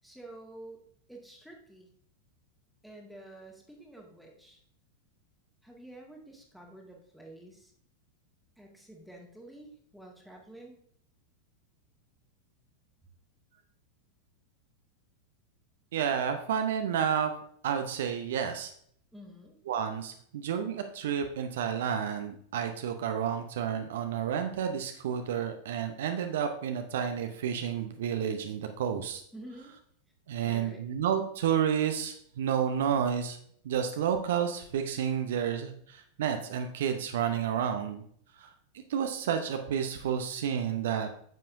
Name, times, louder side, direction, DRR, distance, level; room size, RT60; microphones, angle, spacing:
voice 1, 0.0-0.8 1.1-1.9 2.8-4.6 5.6-7.7 8.6-10.8 19.1-19.6 29.3-29.7 30.4-30.9, right 1 dB, ahead, 0 dB, 1.7 m, -49 dB
voice 2, 15.9-17.3 17.6-18.7 19.7-29.2 30.3-33.4 33.6-38.0 38.4-38.5 38.9-41.1, right 8 dB, 60° right, 6 dB, 0.7 m, -30 dB
9.2 x 7.5 x 2.6 m, 0.63 s
figure-of-eight pair, 90°, 0 cm